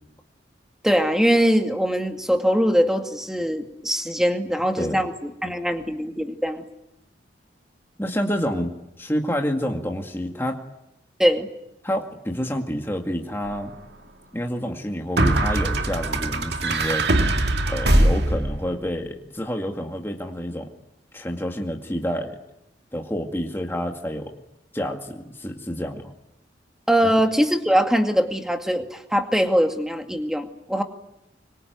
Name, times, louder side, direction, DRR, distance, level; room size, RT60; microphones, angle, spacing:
voice 1, 0.8-6.6 11.2-11.5 26.9-30.8, equal, 5° right, 5 dB, 2.2 m, -22 dB
voice 2, 8.0-10.6 11.8-13.7 14.3-17.1 17.7-20.7 21.1-22.4 22.9-24.4 24.7-26.1 27.1-27.2, equal, 15° left, 2 dB, 2.1 m, -28 dB
sound 1, 13.5-13.6 15.2-18.7, right 1 dB, 60° right, 2.3 m, -21 dB
25.5 x 24.0 x 9.4 m, 0.86 s
head